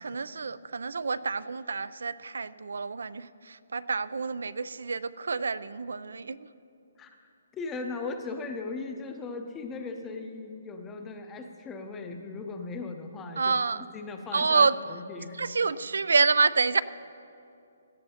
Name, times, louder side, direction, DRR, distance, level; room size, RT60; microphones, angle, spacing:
voice 1, 0.0-6.4 13.4-13.9 14.3-14.8 15.4-16.8, right 4 dB, 85° right, 16 dB, 0.4 m, -27 dB
voice 2, 7.5-15.4, left 3 dB, 10° left, 5 dB, 0.6 m, -38 dB
17.5 x 13.0 x 2.8 m, 2.6 s
hypercardioid pair, 170°, 0 cm